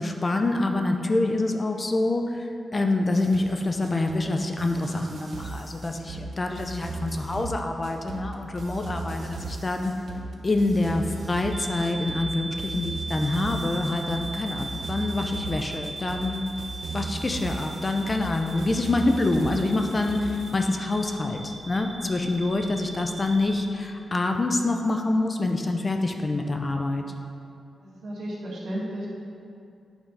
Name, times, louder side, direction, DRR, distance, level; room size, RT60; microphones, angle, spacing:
voice 1, 0.0-9.9 10.4-16.6 16.9-27.0, left 2 dB, 30° left, 4 dB, 0.6 m, -26 dB
sound 1, 3.1-20.6, right 3 dB, 70° right, 0.8 m, -37 dB
sound 2, 11.5-23.6, right 2 dB, 20° right, 1.4 m, -39 dB
voice 2, 27.8-29.1, right 1 dB, 85° right, -6 dB, 1.7 m, -34 dB
8.8 x 3.6 x 5.4 m, 2.4 s
wide cardioid pair, 110°, 0 cm